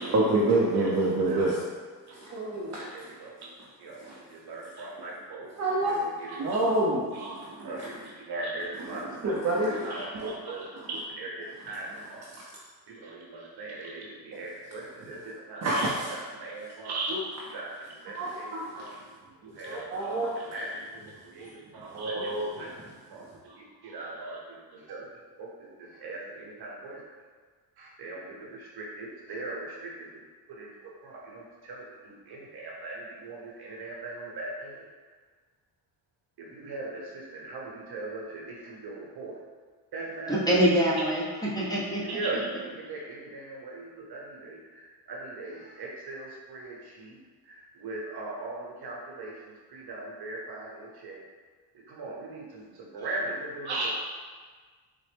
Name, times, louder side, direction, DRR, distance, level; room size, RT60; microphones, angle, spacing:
voice 1, 0.0-1.6 2.1-2.8 4.0-4.2 5.6-6.0 6.4-7.1 7.6-7.9 8.9-10.3 15.6-16.1 17.1-17.2 18.1-18.9 19.7-20.3 21.9-22.6, right 2 dB, 40° right, -5 dB, 0.6 m, -28 dB
voice 2, 0.7-1.5 2.1-2.2 2.8-3.3 3.8-4.0 4.3-9.6 9.8-12.3 12.9-18.9 19.4-20.8 21.2-22.7 23.1-25.1 25.4-25.5 25.8-27.0 27.8-30.1 30.5-34.8 36.4-39.4 39.9-40.5 41.5-41.7 42.0-47.2 47.4-51.2 51.9-53.9, right 2 dB, 60° right, -3 dB, 0.9 m, -39 dB
voice 3, 40.3-41.2 41.5-42.2, equal, 10° left, -6 dB, 0.8 m, -24 dB
4.0 x 2.1 x 3.3 m, 1.5 s
cardioid pair, 85°, 43 cm